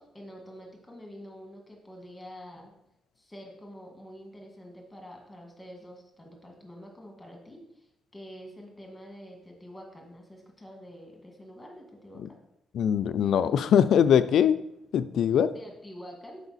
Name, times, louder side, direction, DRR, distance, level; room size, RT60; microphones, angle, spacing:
voice 1, 0.0-2.7 3.2-12.4 15.5-16.4, equal, 10° left, 1 dB, 1.8 m, -47 dB
voice 2, 12.7-14.5 14.9-15.5, left 8 dB, 70° left, 13 dB, 0.3 m, -22 dB
6.9 x 4.8 x 4.0 m, 0.82 s
cardioid pair, 90°, 0 cm